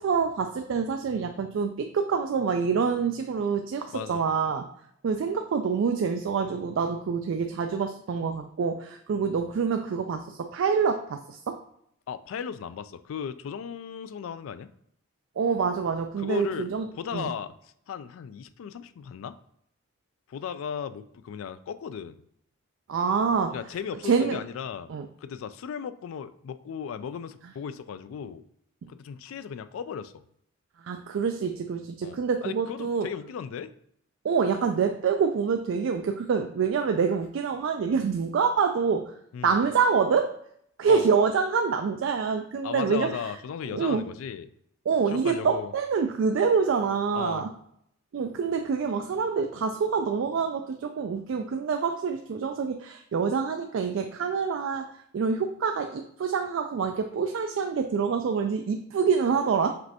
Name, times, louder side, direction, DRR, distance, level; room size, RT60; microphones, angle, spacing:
voice 1, 0.0-4.6 5.0-11.6 15.4-17.3 22.9-23.6 24.0-24.4 24.9-25.1 30.8-33.1 34.2-39.1 39.4-40.3 40.8-43.2 43.7-44.0 44.9-47.5 48.1-54.9 55.1-59.8, right 5 dB, 65° right, 6 dB, 0.3 m, -26 dB
voice 2, 3.9-4.2 12.1-14.7 16.2-16.7 17.0-19.4 20.3-22.2 23.5-24.9 25.2-28.4 28.9-30.2 32.0-33.7 39.3-39.6 40.9-41.1 42.6-44.5 45.1-45.7 47.1-47.5, left 7 dB, 80° left, 13 dB, 0.3 m, -36 dB
5.1 x 3.2 x 2.8 m, 0.71 s
head